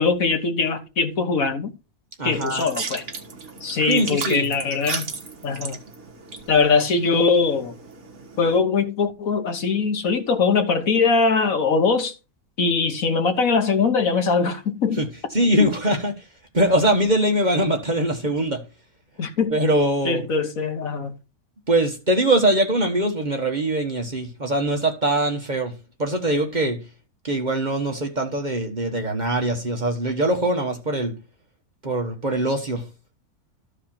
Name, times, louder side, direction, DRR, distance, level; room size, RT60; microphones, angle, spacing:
voice 1, 0.0-1.7 2.2-3.0 3.6-5.1 5.4-5.8 6.5-7.7 8.4-12.1 12.6-15.0 19.2-19.6 20.1-21.1, left 4 dB, 65° left, 1.7 m, -21 dB
voice 2, 2.2-2.7 3.9-4.5 15.0-15.1 15.3-16.2 16.5-18.6 19.5-20.2 21.7-25.7 26.0-26.8 27.2-31.2 31.8-32.8, right 1 dB, 30° right, 1.3 m, -22 dB
sound 1, 2.4-8.6, right 4 dB, 50° right, 1.8 m, -35 dB
13.5 x 5.0 x 4.3 m
omnidirectional pair, 1.6 m